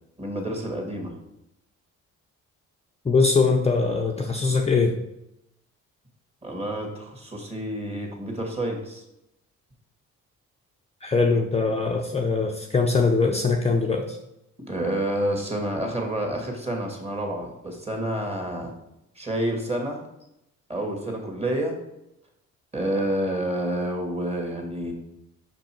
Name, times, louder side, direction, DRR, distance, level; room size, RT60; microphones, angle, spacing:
voice 1, 0.2-1.2 6.4-9.0 14.7-18.7 19.2-20.0 20.7-21.7 22.7-24.9, right 1 dB, 20° right, 2 dB, 1.8 m, -29 dB
voice 2, 3.0-5.0 11.0-14.2, left 4 dB, 20° left, 1 dB, 0.6 m, -22 dB
5.4 x 5.2 x 4.4 m, 0.84 s
cardioid pair, 90°, 30 cm